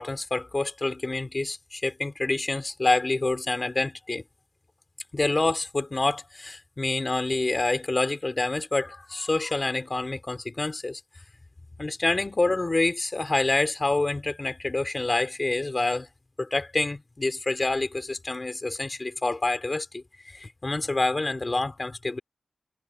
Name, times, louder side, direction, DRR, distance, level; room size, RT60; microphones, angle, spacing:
voice 1, 0.0-4.2 5.1-11.0 11.8-16.1 16.4-22.2, left 2 dB, 30° left, 3.7 m, -27 dB
wide cardioid pair, 110°, 0 cm